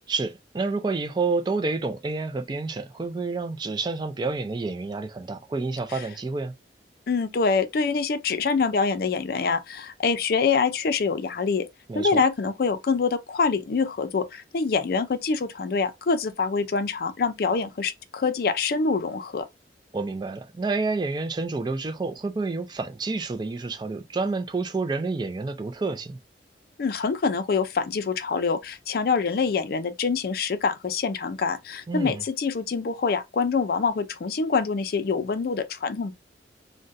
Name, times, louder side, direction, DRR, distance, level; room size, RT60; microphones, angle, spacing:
voice 1, 0.1-6.5 11.9-12.2 19.9-26.2 31.9-32.2, right 3 dB, 25° right, 0.3 m, -29 dB
voice 2, 7.1-11.7 11.9-19.5 26.8-36.1, left 5 dB, 55° left, 0.4 m, -25 dB
3.8 x 2.1 x 2.5 m
head